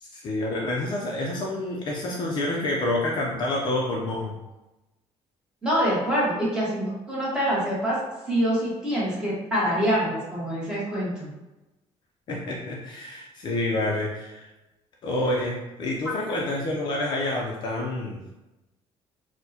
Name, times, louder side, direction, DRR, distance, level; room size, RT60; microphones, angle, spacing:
voice 1, 0.0-4.3 12.3-14.5 15.0-18.2, left 1 dB, 40° left, -2 dB, 0.4 m, -28 dB
voice 2, 5.6-8.0 8.3-11.3, equal, 5° right, -7 dB, 1.0 m, -25 dB
4.3 x 2.1 x 2.7 m, 1.0 s
cardioid pair, 180°, 12 cm